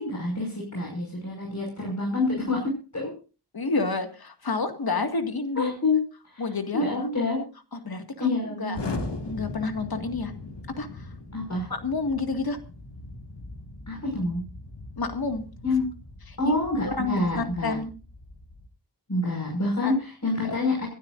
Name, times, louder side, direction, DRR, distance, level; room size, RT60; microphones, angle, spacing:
voice 1, 0.0-3.1 5.6-6.0 6.3-6.4 6.7-7.4 8.2-8.8 11.3-11.7 13.9-14.4 15.6-15.8 16.4-17.8 19.1-20.9, left 2 dB, 40° left, -2 dB, 5.8 m, -27 dB
voice 2, 3.5-5.7 6.4-7.1 7.8-8.8 9.2-10.3 10.8-11.1 11.7-12.6 15.0-15.4 16.5-16.6 16.8-17.9 19.8-20.0 20.4-20.5, left 3 dB, 60° left, 6 dB, 2.1 m, -29 dB
Explosion, 8.7-18.7, left 2 dB, 75° left, 2.2 m, -39 dB
27.0 x 12.5 x 2.6 m, 0.35 s
wide cardioid pair, 70°, 42 cm